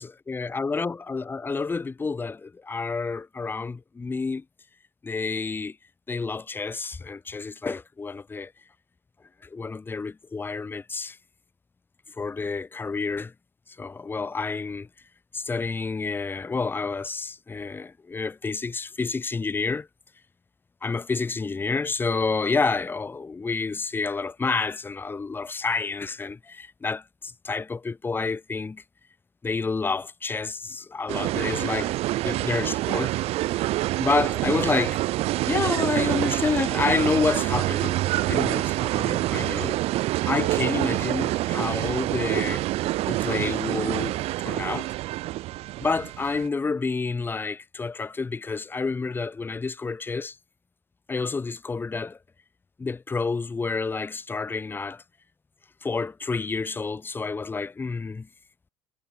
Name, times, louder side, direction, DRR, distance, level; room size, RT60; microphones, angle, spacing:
voice 1, 0.0-4.4 5.0-5.8 6.1-8.5 9.4-11.2 12.2-13.3 13.8-14.9 15.3-19.9 20.8-28.8 29.4-33.1 34.0-35.0 35.4-38.0 38.3-39.8 40.3-42.6 43.1-44.9 45.8-50.4 51.1-52.2 52.8-55.0 55.8-58.3, left 4 dB, 15° left, 0.8 m, -29 dB
sound 1, 31.1-46.5, right 17 dB, 60° right, 0.4 m, -26 dB
cardioid pair, 105°, 12 cm